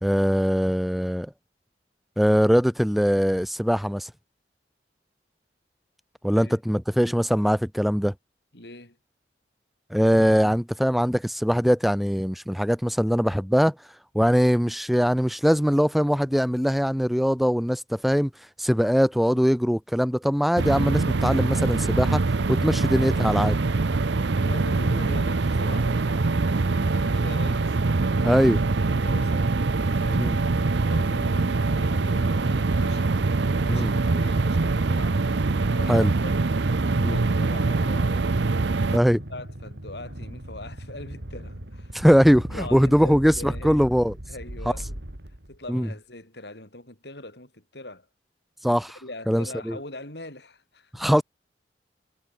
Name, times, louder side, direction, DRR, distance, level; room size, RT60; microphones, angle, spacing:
voice 1, 0.0-1.3 2.2-4.1 6.2-8.1 9.9-13.7 14.1-18.3 18.6-22.2 22.5-23.6 28.2-28.6 30.2-30.4 33.7-33.9 35.9-36.1 37.0-37.2 38.9-39.2 41.9-42.4 42.7-44.1 45.7-45.9 48.6-49.0 49.3-49.8 50.9-51.2, equal, ahead, 1.0 m, -21 dB
voice 2, 8.5-9.0 22.8-22.9 24.4-27.8 28.8-29.6 29.8-30.6 30.8-33.2 33.6-35.2 35.7-36.3 36.7-38.3 38.7-42.1 42.3-43.9 44.3-45.0 45.5-48.1 49.0-51.1, left 2 dB, 70° left, 6.9 m, -41 dB
sound 1, 20.6-39.0, right 3 dB, 90° right, 0.7 m, -23 dB
sound 2, 30.7-45.7, right 1 dB, 75° right, 3.3 m, -41 dB
head